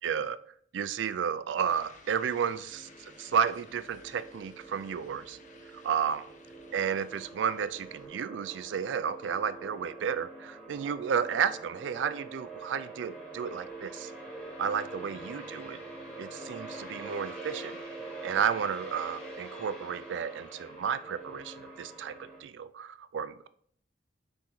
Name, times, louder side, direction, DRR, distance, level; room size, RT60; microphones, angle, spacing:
voice 1, 0.0-0.4 0.7-5.4 5.7-6.2 6.7-14.1 14.6-15.8 16.2-17.8 18.2-23.5, right 7 dB, 75° right, 14 dB, 0.3 m, -32 dB
sound 1, 1.7-8.1, left 3 dB, 40° left, 0.9 m, -57 dB
sound 2, 2.7-22.4, right 2 dB, 5° left, 1.3 m, -45 dB
9.8 x 3.5 x 3.1 m, 0.64 s
head